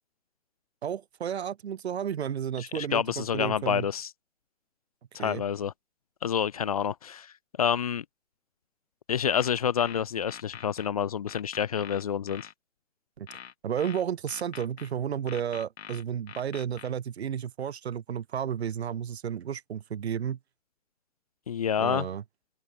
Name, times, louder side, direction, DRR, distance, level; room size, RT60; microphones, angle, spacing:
voice 1, 0.8-3.9 5.2-5.4 13.2-13.3 13.6-20.4 21.8-22.2, right 8 dB, 55° right, 2.0 m, -32 dB
voice 2, 2.6-4.1 5.1-5.7 6.2-7.3 7.6-8.0 9.1-12.5 21.5-22.1, left 8 dB, 30° left, 0.6 m, -28 dB
sound 1, 9.3-10.9 11.3-12.5 13.3-14.9 15.3-16.9, left 8 dB, 55° left, 4.6 m, -44 dB
open air
hypercardioid pair, 150°, 39 cm